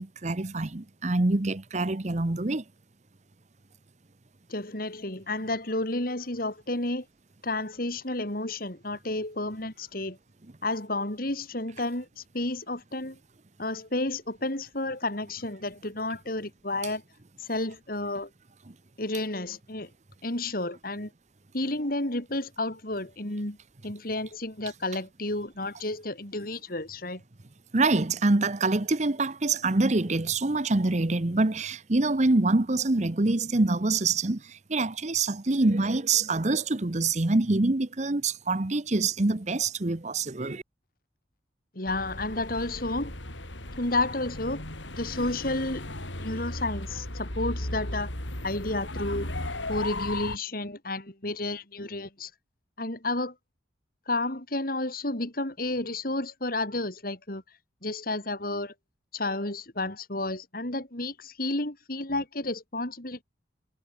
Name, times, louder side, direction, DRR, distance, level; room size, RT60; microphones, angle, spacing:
voice 1, 0.0-2.6 27.7-40.6, right 2 dB, 40° right, 0.9 m, -25 dB
voice 2, 4.5-7.1 7.4-10.2 10.6-13.2 13.6-17.0 17.4-18.3 19.0-19.9 20.2-21.1 21.5-23.6 23.8-27.2 41.7-43.1 43.8-44.6 45.0-48.1 48.4-49.3 49.7-52.3 52.8-53.3 54.1-57.4 57.8-58.7 59.1-63.2, left 2 dB, 50° left, 3.6 m, -31 dB
sound 1, 41.9-50.4, left 1 dB, 85° left, 6.0 m, -36 dB
head